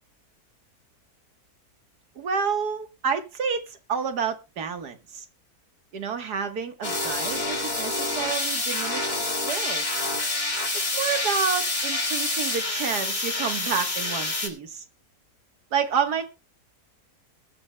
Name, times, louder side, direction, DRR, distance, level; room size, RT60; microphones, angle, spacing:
voice 1, 2.2-5.3 5.9-9.1 9.4-9.9 10.9-14.8 15.7-16.2, right 6 dB, 90° right, 7 dB, 1.9 m, -29 dB
sound 1, 6.8-14.5, left 2 dB, 30° left, 2.4 m, -27 dB
21.0 x 10.5 x 2.2 m, 0.28 s
omnidirectional pair, 1.7 m